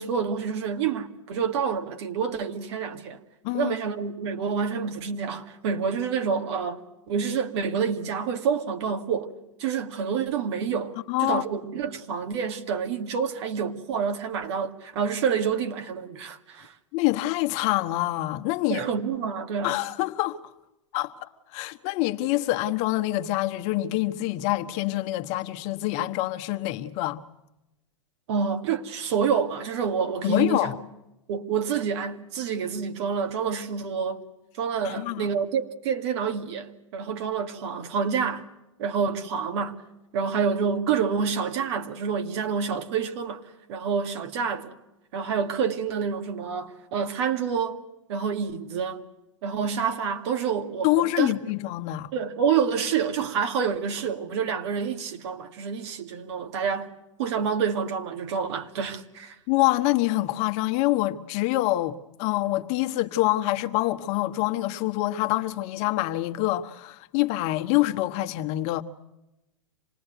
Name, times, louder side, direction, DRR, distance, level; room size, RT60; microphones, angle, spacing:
voice 1, 0.0-3.2 3.5-6.8 7.1-9.3 9.6-16.7 18.7-19.8 28.3-30.7 31.3-34.2 34.6-38.5 38.8-39.8 40.1-43.4 43.7-44.8 45.1-47.8 48.1-49.0 49.4-51.3 52.1-56.9 57.2-59.4, right 6 dB, 60° right, 2.2 m, -28 dB
voice 2, 3.4-3.7 11.1-11.4 16.9-18.8 19.6-20.4 20.9-27.2 30.2-30.8 34.8-35.3 50.8-52.1 59.5-68.8, left 17 dB, 45° left, 1.2 m, -26 dB
26.5 x 19.0 x 9.2 m
hypercardioid pair, 115°, 16 cm